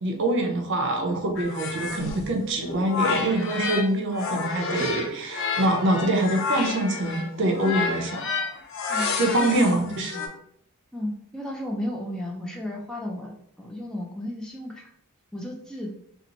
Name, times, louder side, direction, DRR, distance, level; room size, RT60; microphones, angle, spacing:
voice 1, 0.0-8.2 9.2-10.2, right 1 dB, 55° right, 3 dB, 0.6 m, -25 dB
sound 1, 1.4-3.9 4.1-10.3, left 4 dB, 60° left, 0.6 m, -30 dB
voice 2, 8.9-9.9 10.9-14.9 15.3-15.9, left 1 dB, 5° left, -1 dB, 0.3 m, -34 dB
2.8 x 2.1 x 3.9 m, 0.70 s
head